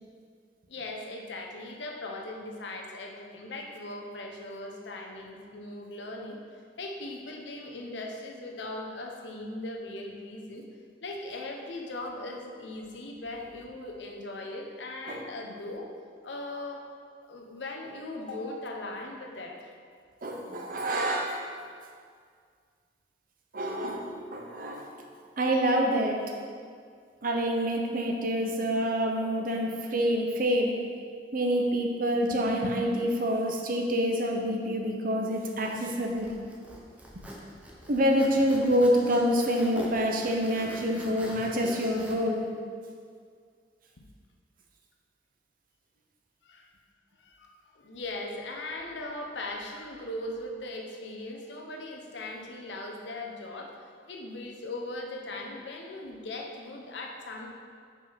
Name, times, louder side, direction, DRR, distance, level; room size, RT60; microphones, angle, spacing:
voice 1, 0.7-6.4 6.8-10.6 11.0-15.9 16.2-16.8 17.2-19.7 46.4-46.7 47.2-57.5, left 2 dB, 90° left, 1 dB, 0.9 m, -39 dB
voice 2, 20.2-21.4 23.5-24.9 25.4-26.2 27.2-30.8 31.3-36.3 37.1-37.3 37.9-42.4, equal, 55° right, 1 dB, 0.9 m, -27 dB
Zipper (clothing), 35.5-42.2, equal, 10° right, 0.8 m, -44 dB
5.5 x 5.2 x 5.3 m, 2.1 s
head